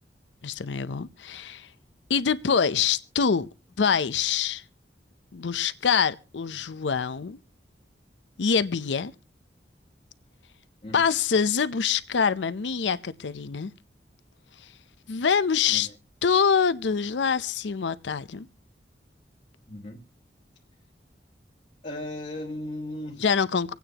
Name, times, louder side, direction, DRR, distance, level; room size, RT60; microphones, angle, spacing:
voice 1, 0.4-1.7 2.1-3.5 3.8-4.6 5.3-7.4 8.4-9.1 10.9-13.7 15.1-15.9 16.2-18.5 23.2-23.7, left 6 dB, 85° left, 0.6 m, -25 dB
voice 2, 19.7-20.0 21.8-23.2, left 1 dB, 40° left, 1.3 m, -36 dB
25.5 x 9.2 x 2.9 m
head